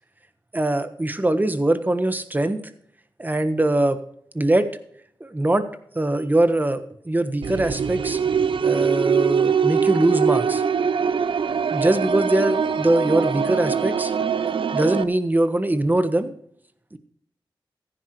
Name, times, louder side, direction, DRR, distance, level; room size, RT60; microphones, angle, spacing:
voice 1, 0.5-2.6 3.2-4.0 4.3-4.7 5.2-5.7 5.9-8.2 8.6-10.6 11.7-14.1 14.7-16.3 16.9-17.0, right 1 dB, 20° right, 10 dB, 1.3 m, -22 dB
sound 1, 7.4-15.0, right 6 dB, 70° right, 0.6 m, -22 dB
15.0 x 10.5 x 3.2 m, 0.66 s
wide cardioid pair, 70°, 9 cm